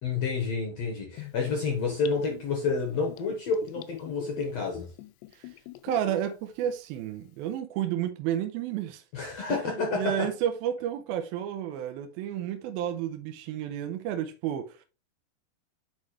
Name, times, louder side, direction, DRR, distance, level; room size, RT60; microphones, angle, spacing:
voice 1, 0.0-4.9 9.1-10.3, left 4 dB, 70° left, 1.6 m, -29 dB
Gurgling / Bathtub (filling or washing), 1.2-6.3 6.7-6.8, left 14 dB, 90° left, 2.7 m, -44 dB
voice 2, 5.8-9.0 9.5-9.6 9.9-14.9, right 10 dB, 80° right, 2.2 m, -31 dB
9.6 x 4.8 x 3.1 m
omnidirectional pair, 4.8 m